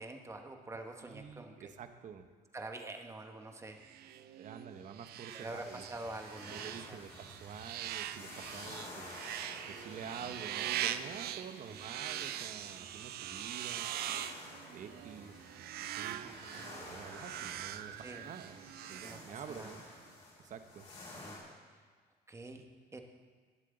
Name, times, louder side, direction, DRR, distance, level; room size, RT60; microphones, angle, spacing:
voice 1, 0.0-1.7 2.5-3.8 5.3-7.0 11.7-11.8 16.2-16.7 18.0-18.3 18.9-19.8 21.0-21.4 21.7-21.8 22.3-22.6 22.9-23.0, right 2 dB, 15° right, 4 dB, 1.2 m, -46 dB
voice 2, 1.1-2.3 4.4-5.8 6.5-9.1 9.7-13.9 14.7-15.4 15.8-16.4 16.7-19.8 20.4-20.9, right 7 dB, 50° right, 8 dB, 0.9 m, -48 dB
sound 1, 3.8-19.8, right 11 dB, 70° right, 0.5 m, -42 dB
sound 2, 5.3-21.4, left 2 dB, 45° left, 4.3 m, -52 dB
19.0 x 7.7 x 3.9 m, 1.5 s
cardioid pair, 110°, 17 cm